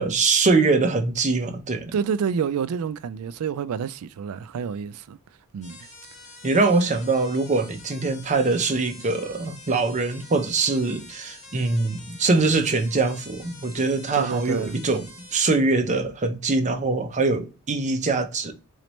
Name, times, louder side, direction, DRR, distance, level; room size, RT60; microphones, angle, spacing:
voice 1, 0.0-2.0 6.4-18.5, right 3 dB, 35° right, 0.6 m, -23 dB
voice 2, 1.9-5.2 5.5-5.8 14.2-14.8, right 7 dB, 75° right, 0.3 m, -28 dB
sound 1, 5.6-15.6, left 2 dB, 35° left, 1.7 m, -46 dB
4.0 x 3.2 x 3.0 m
head